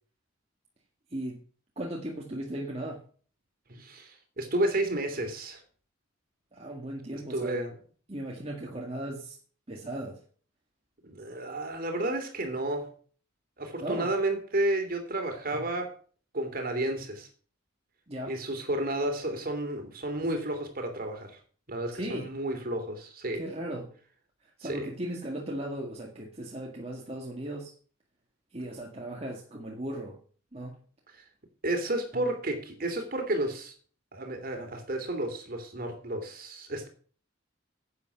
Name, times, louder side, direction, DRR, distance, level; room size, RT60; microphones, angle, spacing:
voice 1, 1.8-3.0 6.5-7.6 8.1-9.4 9.7-10.2 13.8-14.1 15.5-15.6 18.1-18.4 21.9-22.3 23.3-23.9 24.6-27.7 28.5-30.2 30.5-30.8, right 1 dB, 30° right, 1.9 m, -37 dB
voice 2, 3.7-5.6 7.3-7.7 11.0-12.9 13.6-15.9 16.3-17.3 18.3-21.4 21.7-23.4 24.6-24.9 31.1-31.2 31.6-33.7 34.1-36.9, right 1 dB, 45° right, 2.9 m, -31 dB
10.5 x 8.4 x 5.9 m
head